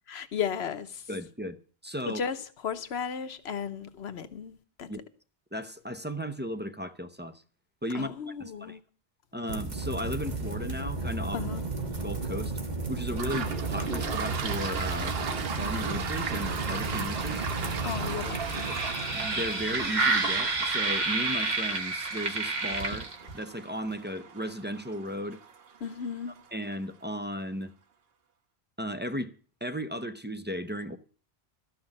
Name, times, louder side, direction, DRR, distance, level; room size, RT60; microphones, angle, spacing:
voice 1, 0.1-1.1 2.1-4.5 4.8-4.9 7.9-8.8 11.3-11.6 17.8-18.7 25.8-26.3, left 7 dB, 75° left, 1.2 m, -35 dB
voice 2, 1.1-1.6 1.8-2.2 4.9-5.0 5.5-7.4 7.8-8.1 8.4-8.8 9.3-11.5 12.0-12.5 12.9-15.2 15.6-17.5 18.6-18.8 19.1-25.4 26.5-27.7 28.8-29.4 29.6-31.0, equal, 15° right, 0.5 m, -35 dB
sound 1, 9.5-23.4, right 3 dB, 45° right, 1.5 m, -31 dB
Toilet flush, 13.1-26.5, right 6 dB, 70° right, 1.1 m, -38 dB
13.0 x 5.9 x 8.8 m
omnidirectional pair, 1.1 m